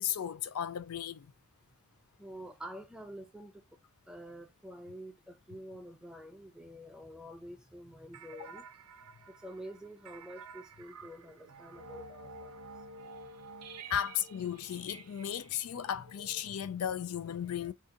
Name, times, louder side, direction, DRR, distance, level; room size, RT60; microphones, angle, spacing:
voice 1, 0.0-1.3 13.9-17.7, left 9 dB, 75° left, 0.4 m, -35 dB
voice 2, 2.2-3.6 4.1-8.6 9.4-12.5, equal, 5° right, 0.4 m, -48 dB
sound 1, 8.1-17.0, right 3 dB, 80° right, 0.5 m, -51 dB
2.7 x 2.5 x 3.7 m
head